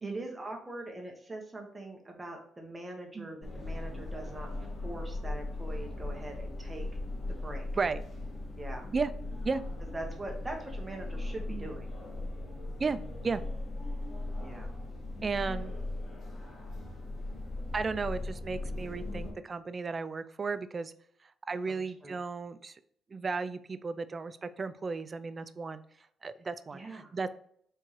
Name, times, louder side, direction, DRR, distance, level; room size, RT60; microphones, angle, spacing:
voice 1, 0.0-4.5 4.8-6.9 7.3-7.7 8.5-8.9 9.9-11.9 14.4-14.7 21.7-22.1 26.7-27.1, right 2 dB, 20° right, 1 dB, 1.2 m, -42 dB
sound 1, 3.4-19.3, left 2 dB, 45° left, 1.6 m, -38 dB
voice 2, 12.8-13.4 15.2-15.8 17.7-20.9 21.5-22.8 23.1-25.8 26.2-27.3, right 4 dB, 35° right, 12 dB, 0.3 m, -34 dB
4.4 x 3.5 x 3.1 m, 0.67 s
cardioid pair, 90°, 0 cm